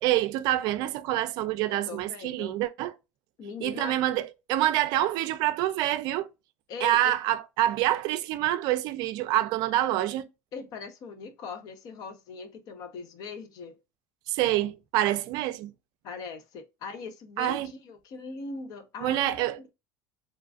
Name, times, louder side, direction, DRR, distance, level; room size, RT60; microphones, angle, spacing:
voice 1, 0.0-2.9 3.6-6.3 6.8-10.3 14.3-15.7 17.4-17.7 19.0-19.7, right 14 dB, 60° right, 0.4 m, -26 dB
voice 2, 1.7-2.6 3.4-4.0 6.7-7.1 10.5-13.8 16.0-19.7, left 4 dB, 50° left, 0.7 m, -40 dB
3.0 x 2.4 x 2.4 m
supercardioid pair, 130°, 8 cm